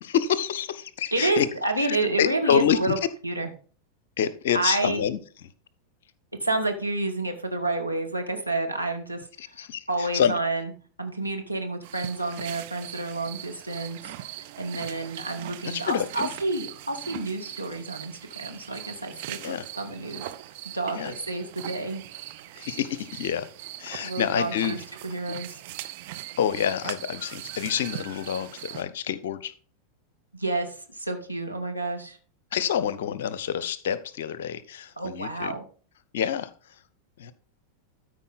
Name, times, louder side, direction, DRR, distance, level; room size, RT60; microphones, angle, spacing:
voice 1, 0.0-1.5 1.8-2.9 4.2-5.2 9.4-10.3 15.6-16.3 19.4-19.7 21.0-21.1 22.5-23.5 23.8-24.8 26.4-29.5 32.5-35.6 36.1-36.5 37.2-37.3, left 9 dB, 60° left, 15 dB, 0.7 m, -27 dB
voice 2, 1.1-3.0 3.2-3.5 4.5-5.0 6.4-9.2 9.5-10.7 11.0-14.0 14.4-20.3 20.7-22.0 24.0-24.8 25.0-25.6 30.3-32.2 35.0-35.6, right 2 dB, 90° right, 2 dB, 1.4 m, -29 dB
sound 1, 11.8-28.8, right 14 dB, 50° right, 0.7 m, -40 dB
13.0 x 4.7 x 4.0 m, 0.41 s
figure-of-eight pair, 90°, 0 cm